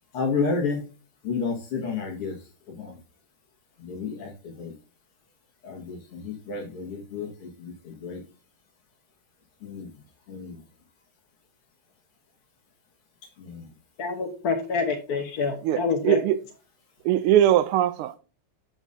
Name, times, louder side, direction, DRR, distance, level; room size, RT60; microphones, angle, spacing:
voice 1, 0.1-0.8 1.2-2.4 2.7-3.0 3.8-4.7 5.6-8.2 9.6-9.9 10.3-10.6 13.4-13.7, left 4 dB, 85° left, 2.7 m, -31 dB
voice 2, 14.0-16.2, left 5 dB, 50° left, 1.5 m, -27 dB
voice 3, 15.6-16.4 17.0-18.2, right 11 dB, 85° right, 1.5 m, -21 dB
8.1 x 7.3 x 2.6 m
omnidirectional pair, 2.4 m